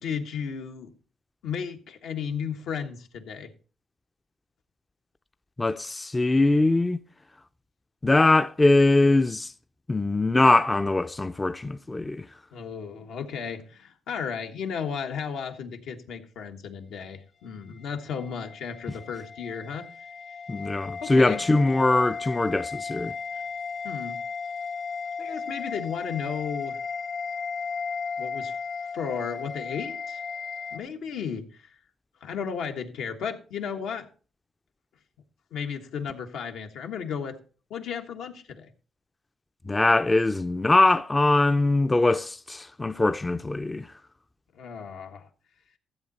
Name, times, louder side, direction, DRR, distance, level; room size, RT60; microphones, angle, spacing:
voice 1, 0.0-0.9 1.4-3.5 12.5-19.9 21.0-21.4 23.8-24.2 25.2-26.8 28.2-28.5 28.9-30.2 30.7-31.8 32.2-34.1 35.5-37.4 37.7-38.7 44.5-45.3, left 6 dB, 80° left, 1.4 m, -34 dB
voice 2, 5.6-7.0 8.0-9.5 9.9-12.2 20.5-23.1 39.7-43.9, left 2 dB, 20° left, 0.5 m, -22 dB
sound 1, 17.7-30.8, left 5 dB, 50° left, 1.6 m, -35 dB
14.0 x 7.8 x 4.1 m
cardioid pair, 90°, 0 cm